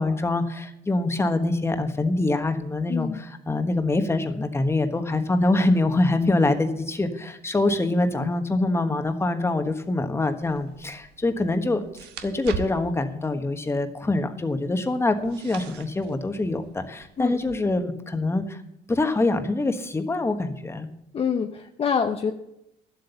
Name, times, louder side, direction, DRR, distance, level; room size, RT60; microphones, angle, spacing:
voice 1, 0.0-11.8 12.2-18.6 18.9-20.9, left 2 dB, 15° left, 7 dB, 1.3 m, -24 dB
voice 2, 2.9-3.2 17.2-17.4 21.1-22.3, left 6 dB, 35° left, 6 dB, 0.7 m, -26 dB
sound 1, 10.4-17.6, right 7 dB, 85° right, 1.1 m, -42 dB
12.0 x 8.0 x 7.0 m, 0.81 s
cardioid pair, 110°, 17 cm